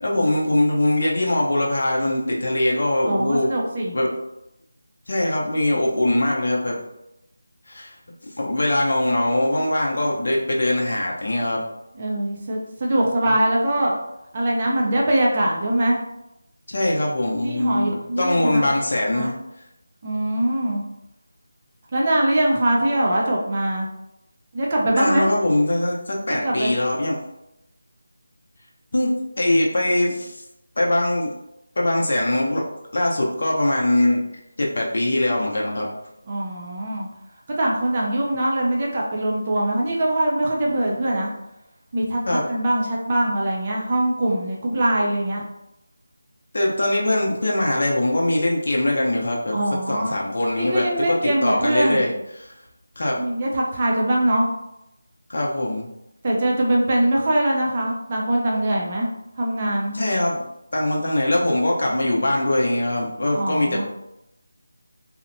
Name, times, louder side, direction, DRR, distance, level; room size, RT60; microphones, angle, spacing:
voice 1, 0.0-3.5 3.9-4.1 5.1-6.8 7.7-7.9 8.2-11.6 13.3-13.4 16.7-19.4 24.9-27.2 28.9-30.4 30.8-31.3 31.8-32.6 32.9-34.2 34.6-35.9 42.3-42.5 46.5-49.6 49.9-52.5 53.0-53.2 55.3-55.9 59.9-60.5 60.7-63.8, left 1 dB, 55° left, -2 dB, 0.6 m, -22 dB
voice 2, 3.1-3.9 12.0-13.9 14.3-16.0 17.4-18.6 19.1-19.3 20.0-20.8 21.9-23.9 24.5-25.3 26.4-26.7 36.3-37.1 37.6-41.3 41.9-45.4 49.5-50.1 50.5-52.1 53.2-54.5 56.2-59.1 59.4-59.9 63.3-63.8, right 1 dB, 25° right, -3 dB, 0.4 m, -22 dB
2.7 x 2.1 x 2.5 m, 0.86 s
figure-of-eight pair, 175°, 0 cm